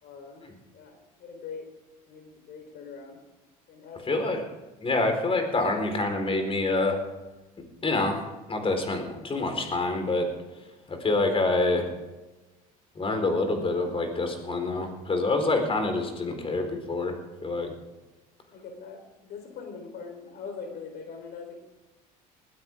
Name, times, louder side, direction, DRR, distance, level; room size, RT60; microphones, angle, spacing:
voice 1, 0.0-0.4 0.7-1.7 2.1-3.2 3.7-4.4 18.5-21.6, left 5 dB, 60° left, 5 dB, 4.0 m, -42 dB
voice 2, 4.1-4.4 4.8-7.0 7.8-8.2 8.5-10.3 10.9-11.9 13.0-17.1 17.4-17.7, left 2 dB, 30° left, 5 dB, 4.4 m, -26 dB
20.0 x 13.0 x 3.7 m, 1.1 s
hypercardioid pair, 75°, 19 cm